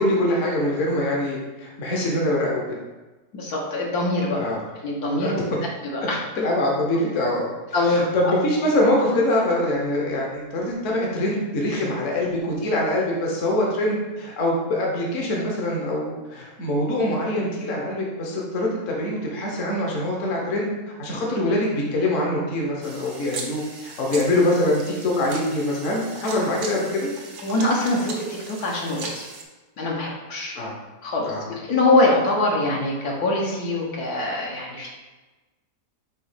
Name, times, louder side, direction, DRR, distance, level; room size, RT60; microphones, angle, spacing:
voice 1, 0.0-2.6 4.4-4.6 5.2-5.4 6.4-7.5 7.9-20.7 21.0-27.1 30.5-30.8 31.2-31.5, left 1 dB, 55° left, -2 dB, 1.3 m, -24 dB
voice 2, 3.3-4.4 4.8-5.4 5.8-6.2 7.7-8.3 27.4-29.3 29.8-30.5 31.0-34.9, left 2 dB, 70° left, -3 dB, 1.6 m, -23 dB
sound 1, 22.8-29.4, right 3 dB, 85° right, 1.5 m, -38 dB
5.2 x 3.9 x 5.0 m, 1.2 s
omnidirectional pair, 1.7 m